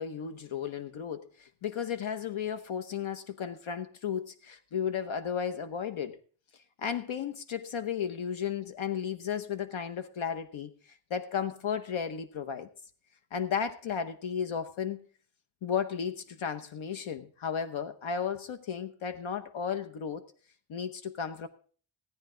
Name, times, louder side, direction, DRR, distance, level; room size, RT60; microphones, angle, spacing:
voice 1, 0.0-6.2 6.8-12.7 13.3-15.0 15.6-20.2 20.7-21.5, left 7 dB, 75° left, 9 dB, 0.9 m, -34 dB
17.0 x 9.5 x 3.8 m, 0.43 s
wide cardioid pair, 115°, 49 cm